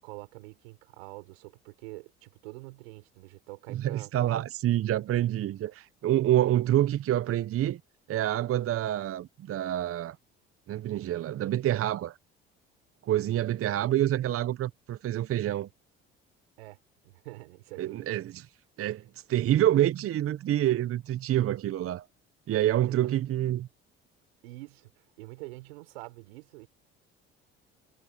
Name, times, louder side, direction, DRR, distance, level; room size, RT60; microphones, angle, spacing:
voice 1, 0.0-4.4 16.6-18.1 22.9-23.1 24.4-26.7, right 23 dB, 85° right, 5.5 m, -46 dB
voice 2, 3.7-7.8 8.1-10.2 10.7-12.2 13.0-15.7 17.8-18.4 18.8-22.1 22.5-23.7, right 13 dB, 50° right, 0.8 m, -27 dB
hypercardioid pair, 65°, 30 cm